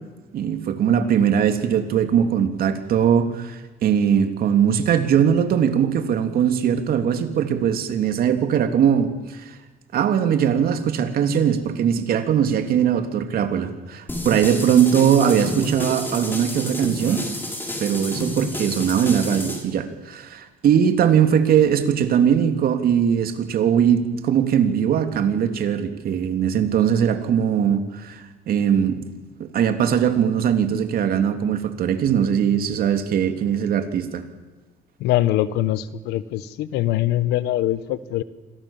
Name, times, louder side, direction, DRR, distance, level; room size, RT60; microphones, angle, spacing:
voice 1, 0.3-9.5 9.9-17.2 17.8-29.0 29.5-34.2, right 8 dB, 60° right, 7 dB, 3.2 m, -20 dB
sound 1, 14.1-19.6, left 1 dB, 10° left, 7.2 m, -30 dB
voice 2, 35.0-38.2, left 14 dB, 90° left, 15 dB, 1.4 m, -23 dB
29.0 x 25.0 x 7.4 m, 1.3 s
cardioid pair, 110°, 17 cm